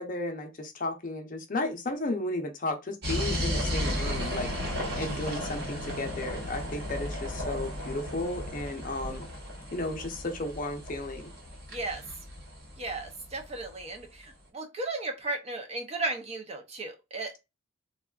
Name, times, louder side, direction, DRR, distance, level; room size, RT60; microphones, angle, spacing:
voice 1, 0.0-4.5 5.0-9.3 9.7-11.3, left 2 dB, 40° left, 0.6 m, -34 dB
sound 1, 3.0-13.7, equal, 50° right, 1.0 m, -34 dB
voice 2, 11.7-12.0 12.8-17.4, right 2 dB, 30° right, 0.5 m, -35 dB
3.5 x 2.2 x 2.3 m
head